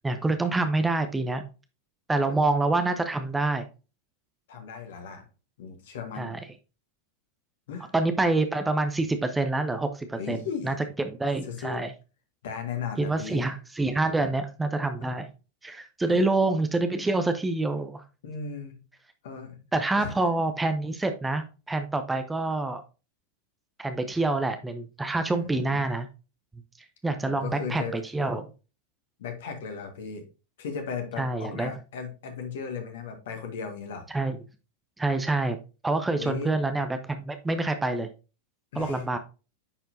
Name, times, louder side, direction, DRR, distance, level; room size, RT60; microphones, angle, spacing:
voice 1, 0.0-1.4 2.1-3.6 6.2-6.4 7.9-11.9 13.0-15.3 15.6-18.0 19.7-22.8 23.8-26.1 27.0-28.4 31.2-31.7 34.1-34.4 35.0-35.6 35.8-38.1 38.8-39.2, right 2 dB, 10° right, 8 dB, 0.7 m, -27 dB
voice 2, 4.5-5.2 5.6-6.4 7.7-7.9 10.2-10.9 11.4-11.8 12.4-13.4 16.0-16.2 18.2-18.8 19.2-19.6 20.0-20.1 25.3-25.8 27.2-28.3 29.2-30.2 30.6-34.1 36.2-36.5 38.7-39.0, left 6 dB, 55° left, 5 dB, 1.6 m, -36 dB
9.7 x 4.5 x 2.7 m, 0.32 s
figure-of-eight pair, 90°, 0 cm